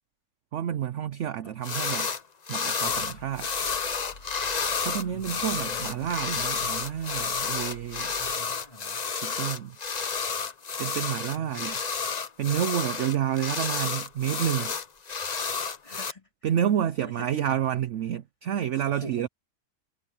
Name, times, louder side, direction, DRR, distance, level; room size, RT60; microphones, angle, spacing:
voice 1, 0.5-2.1 2.5-3.5 4.8-8.1 9.2-9.8 10.8-11.8 12.4-14.7 16.4-19.3, right 10 dB, 60° right, 0.8 m, -29 dB
voice 2, 1.4-1.8 5.1-6.2 8.2-9.1 11.3-11.8 15.8-16.5 17.0-17.7 18.8-19.3, equal, 20° left, 4.0 m, -46 dB
sound 1, 1.6-2.2 2.5-16.1, left 5 dB, 35° left, 0.7 m, -30 dB
sound 2, 2.8-8.4, left 2 dB, 70° left, 5.9 m, -50 dB
omnidirectional pair, 1.7 m